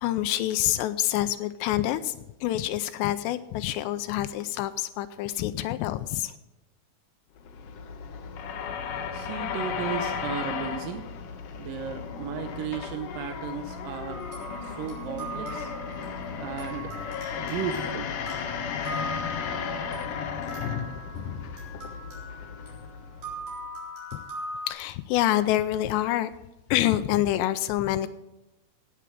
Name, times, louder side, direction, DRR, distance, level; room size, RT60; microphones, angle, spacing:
voice 1, 0.0-6.3 24.1-24.2 24.7-26.3 26.7-28.1, left 14 dB, 90° left, 11 dB, 2.7 m, -27 dB
sound 1, 7.4-23.7, left 6 dB, 70° left, 2.0 m, -35 dB
sound 2, 8.1-20.8, left 4 dB, ahead, 0.9 m, -51 dB
voice 2, 9.1-11.1 11.6-14.3 14.6-15.7 16.4-16.9 17.4-18.2, right 7 dB, 75° right, 6 dB, 2.1 m, -35 dB
sound 3, 14.1-24.7, equal, 45° right, 5.0 m, -40 dB
17.5 x 7.9 x 5.0 m, 0.97 s
omnidirectional pair, 4.9 m